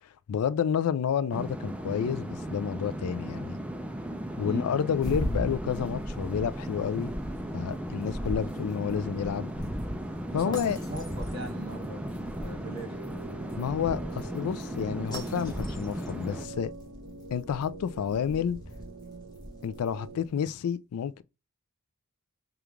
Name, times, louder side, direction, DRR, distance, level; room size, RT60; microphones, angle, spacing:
voice 1, 0.3-3.6 4.4-7.1 7.5-9.5 10.3-10.8 13.6-16.7 17.3-18.6 19.6-21.2, left 8 dB, 80° left, 0.3 m, -30 dB
Atmosphere in the aircraft cabin, 1.3-16.5, equal, 5° right, 0.3 m, -36 dB
sound 1, 5.0-20.1, equal, 20° left, 0.9 m, -40 dB
voice 2, 10.3-13.0, right 1 dB, 50° right, 1.6 m, -40 dB
sound 2, 10.9-20.3, right 3 dB, 70° right, 0.6 m, -46 dB
5.0 x 2.4 x 3.0 m
head